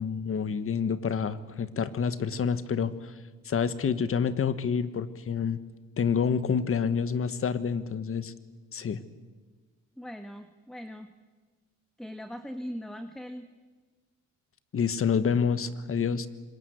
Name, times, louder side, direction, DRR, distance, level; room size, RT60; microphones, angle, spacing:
voice 1, 0.0-3.1 3.4-5.6 6.0-8.3 8.7-9.0 14.7-16.3, left 6 dB, 45° left, 13 dB, 1.4 m, -28 dB
voice 2, 9.9-11.1 12.0-13.5, equal, ahead, 8 dB, 1.5 m, -40 dB
26.0 x 21.5 x 8.0 m, 1.4 s
cardioid pair, 90°, 30 cm